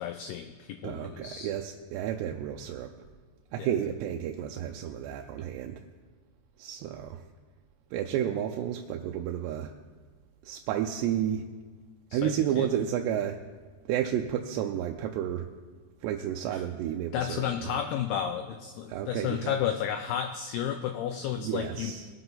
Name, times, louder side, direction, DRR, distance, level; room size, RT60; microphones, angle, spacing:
voice 1, 0.0-1.5 3.6-3.7 12.1-12.7 16.5-16.6 17.1-21.9, left 9 dB, 85° left, 7 dB, 2.2 m, -32 dB
voice 2, 0.8-2.9 3.5-5.8 6.6-7.2 7.9-9.7 10.4-11.4 12.1-13.4 13.9-15.5 16.0-17.7 18.9-19.6 21.4-22.1, right 10 dB, 80° right, 3 dB, 2.6 m, -31 dB
20.0 x 7.9 x 3.9 m, 1.5 s
omnidirectional pair, 5.1 m